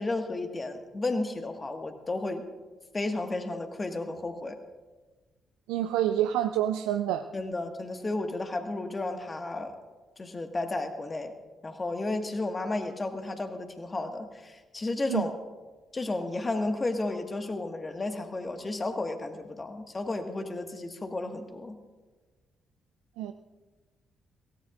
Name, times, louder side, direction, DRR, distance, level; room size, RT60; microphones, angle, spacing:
voice 1, 0.0-2.5 2.9-4.6 7.3-9.8 10.2-11.3 11.6-15.3 15.9-21.8, left 2 dB, 30° left, 5 dB, 1.8 m, -33 dB
voice 2, 5.7-7.2 15.1-15.3 23.2-23.3, right 12 dB, 70° right, 7 dB, 0.4 m, -27 dB
22.0 x 17.5 x 2.5 m, 1.3 s
figure-of-eight pair, 40°, 0 cm